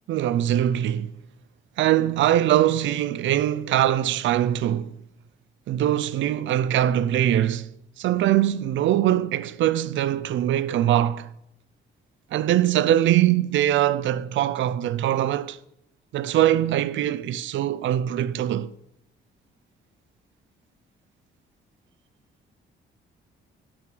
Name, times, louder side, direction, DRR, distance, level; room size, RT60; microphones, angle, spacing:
voice 1, 0.1-1.1 1.8-4.9 5.7-7.7 8.0-11.3 12.3-15.6 16.1-18.7, right 12 dB, 70° right, 0.5 m, -22 dB
11.0 x 6.1 x 6.0 m
cardioid pair, 90°, 20 cm